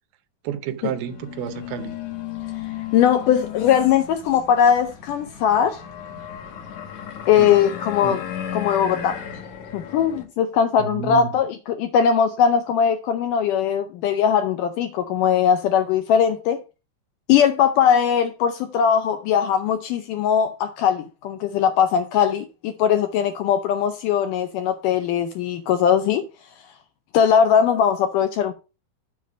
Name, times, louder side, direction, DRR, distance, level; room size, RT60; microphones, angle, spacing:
voice 1, 0.4-2.0 7.4-7.6 8.0-8.2 10.8-11.3, right 8 dB, 80° right, 2.6 m, -30 dB
sound 1, 0.9-10.3, left 9 dB, 60° left, 2.1 m, -35 dB
voice 2, 2.9-5.8 7.3-8.2 8.5-9.2 9.7-16.6 17.3-26.2 27.1-28.5, left 8 dB, 80° left, 1.9 m, -20 dB
7.3 x 4.3 x 6.1 m
omnidirectional pair, 4.3 m